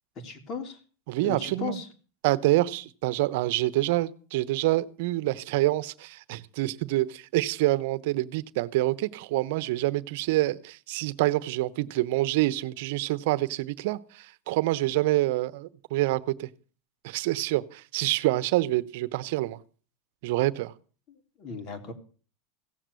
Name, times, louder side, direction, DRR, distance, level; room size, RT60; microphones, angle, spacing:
voice 1, 0.1-0.8 1.2-1.9 21.1-21.9, left 5 dB, 40° left, 6 dB, 3.3 m, -36 dB
voice 2, 1.1-1.8 2.2-16.5 17.0-19.6 20.2-20.7, right 17 dB, 65° right, 16 dB, 1.0 m, -27 dB
16.5 x 7.5 x 8.2 m, 0.40 s
supercardioid pair, 125°, 0 cm